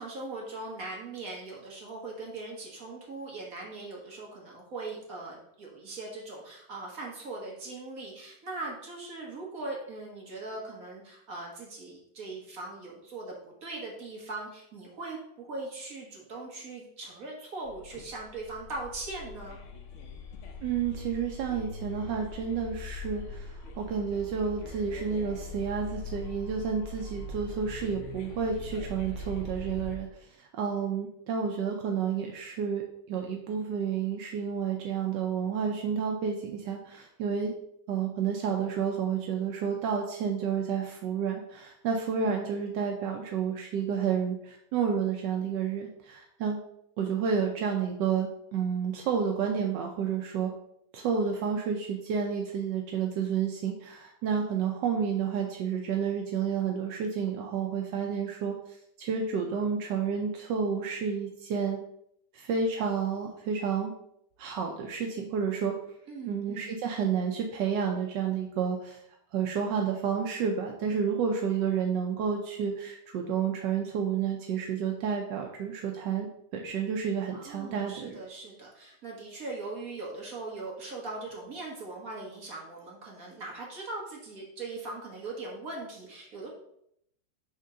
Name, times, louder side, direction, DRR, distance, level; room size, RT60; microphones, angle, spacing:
voice 1, 0.0-19.6 66.1-66.8 77.3-86.5, right 2 dB, 50° right, -2 dB, 1.7 m, -40 dB
sound 1, 17.6-30.0, left 3 dB, 60° left, 0.8 m, -42 dB
voice 2, 20.6-30.1 30.4-32.8 33.1-37.6 37.9-46.6 47.0-50.5 50.9-58.5 59.0-61.8 62.3-63.9 64.4-65.8 66.3-69.0 69.3-76.3 76.5-78.2, right 6 dB, 75° right, 2 dB, 1.3 m, -30 dB
5.2 x 3.6 x 5.5 m, 0.74 s
omnidirectional pair, 2.0 m